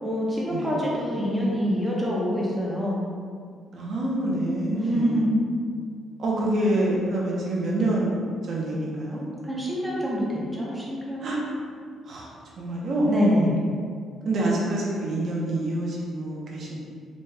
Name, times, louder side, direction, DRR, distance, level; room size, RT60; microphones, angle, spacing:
voice 1, 0.0-3.0 4.7-5.5 9.4-10.3 10.5-11.6 13.1-13.6, equal, 10° right, -5 dB, 0.5 m, -25 dB
voice 2, 3.7-5.3 6.2-8.2 8.4-9.2 11.2-11.4 12.1-13.1 14.2-16.7, right 1 dB, 50° right, -4 dB, 0.7 m, -26 dB
4.1 x 2.3 x 3.2 m, 2.1 s
cardioid pair, 160°, 0 cm